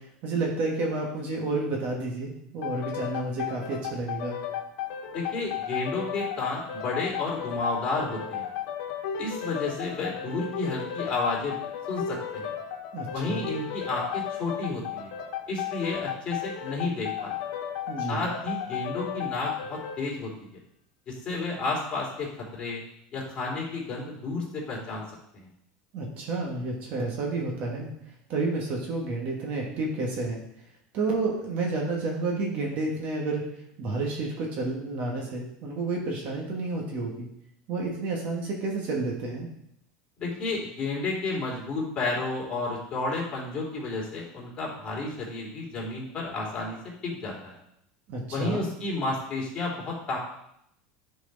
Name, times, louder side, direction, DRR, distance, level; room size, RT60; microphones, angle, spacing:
voice 1, 0.2-4.4 12.9-13.5 17.9-18.3 25.9-27.9 28.3-30.4 30.9-33.4 33.8-37.3 37.7-39.5 48.1-48.7, right 3 dB, 45° right, -1 dB, 1.7 m, -30 dB
sound 1, 2.6-20.0, left 9 dB, 75° left, 1.2 m, -34 dB
voice 2, 5.1-8.4 9.2-11.6 11.9-12.5 13.1-15.1 15.5-17.3 18.1-20.3 21.1-22.8 23.1-25.0 25.3-25.5 40.2-46.8 47.0-47.6 48.3-50.2, left 3 dB, 25° left, -5 dB, 3.2 m, -31 dB
10.0 x 4.7 x 4.1 m, 0.75 s
supercardioid pair, 150°, 4 cm